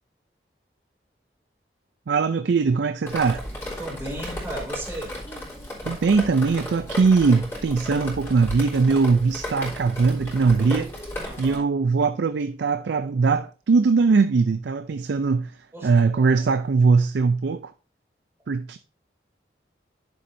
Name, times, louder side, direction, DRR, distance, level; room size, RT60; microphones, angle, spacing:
voice 1, 2.1-3.4 5.8-10.9 11.4-17.7 18.5-18.8, right 4 dB, 70° right, 0.4 m, -21 dB
Drip, 3.1-11.6, left 1 dB, 15° left, 3.2 m, -34 dB
voice 2, 3.8-5.2 11.2-11.7 15.7-16.3, right 1 dB, 15° right, 2.9 m, -36 dB
11.0 x 6.9 x 2.6 m
head